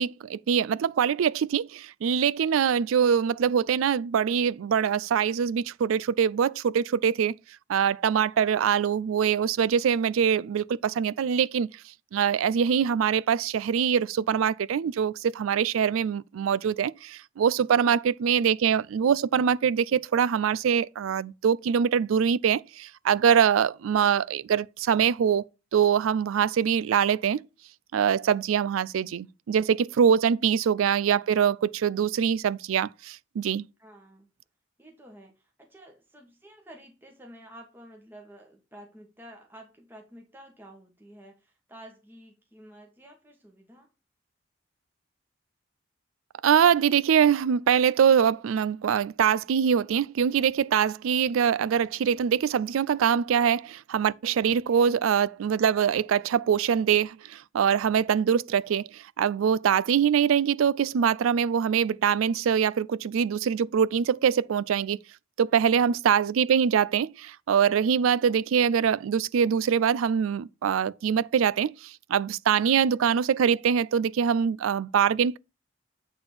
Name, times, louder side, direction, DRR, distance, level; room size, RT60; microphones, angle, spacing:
voice 1, 0.0-7.4 7.7-11.7 12.1-25.4 25.7-27.4 27.9-33.7 46.4-65.0 65.4-75.4, right 7 dB, 90° right, 0.4 m, -24 dB
voice 2, 33.8-34.3 34.8-43.9 54.7-55.1, equal, 10° right, 1.3 m, -51 dB
8.7 x 3.6 x 5.8 m
head